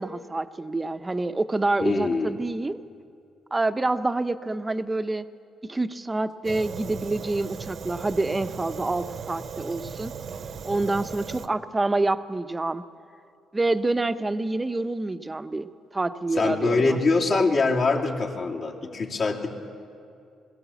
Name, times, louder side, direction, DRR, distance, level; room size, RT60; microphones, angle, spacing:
voice 1, 0.0-2.8 3.5-5.3 5.6-10.1 10.6-12.8 13.5-17.0 17.3-17.4, right 2 dB, 20° right, 11 dB, 0.8 m, -27 dB
voice 2, 1.8-2.3 16.3-19.5, left 3 dB, 55° left, -1 dB, 2.8 m, -24 dB
Fire, 6.4-11.5, right 6 dB, 55° right, 0.9 m, -37 dB
22.0 x 16.5 x 7.1 m, 2.4 s
cardioid pair, 90°, 0 cm